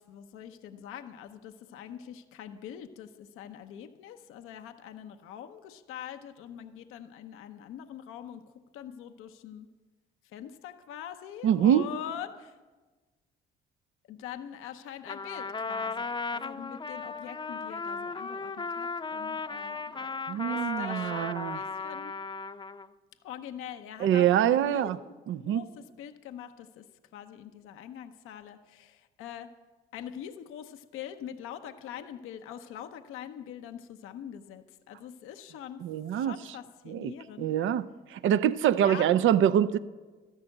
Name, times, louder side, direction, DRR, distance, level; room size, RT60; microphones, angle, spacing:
voice 1, 0.0-8.4 8.7-9.7 10.3-12.6 14.1-20.2 20.5-22.1 23.2-26.8 27.1-29.5 29.9-35.8 36.1-37.5 38.8-39.1, left 9 dB, 75° left, 0.8 m, -43 dB
voice 2, 11.4-11.9 20.3-21.6 24.0-25.0 25.3-25.6 35.8-36.3 36.9-37.1 37.4-37.8 38.1-39.8, right 10 dB, 65° right, 0.6 m, -24 dB
Trumpet, 15.1-22.9, left 4 dB, 20° left, 0.7 m, -36 dB
13.0 x 11.0 x 7.8 m
supercardioid pair, 60°, 21 cm